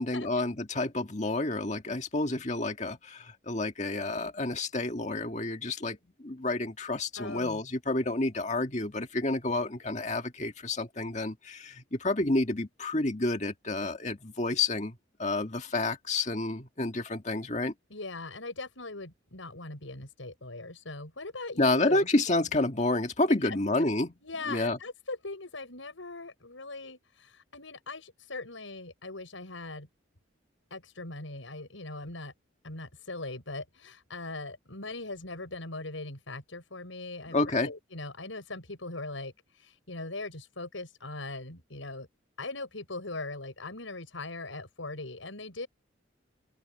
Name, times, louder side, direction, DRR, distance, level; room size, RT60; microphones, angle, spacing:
voice 1, 0.0-6.0 6.2-17.7 21.6-24.1 24.5-24.8 37.3-37.7, left 2 dB, 35° left, 1.9 m, -29 dB
voice 2, 7.2-7.6 17.9-22.1 23.3-23.6 24.2-29.9 30.7-32.3 32.6-42.1 42.4-45.7, left 2 dB, 85° left, 6.5 m, -40 dB
open air
head